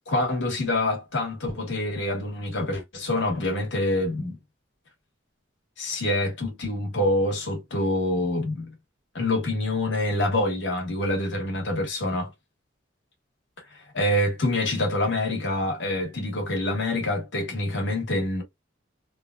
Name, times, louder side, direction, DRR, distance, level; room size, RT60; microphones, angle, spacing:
voice 1, 0.1-4.4 5.8-8.7 9.1-12.3 13.7-18.4, left 1 dB, 70° left, 1.8 m, -26 dB
3.6 x 2.5 x 2.4 m
head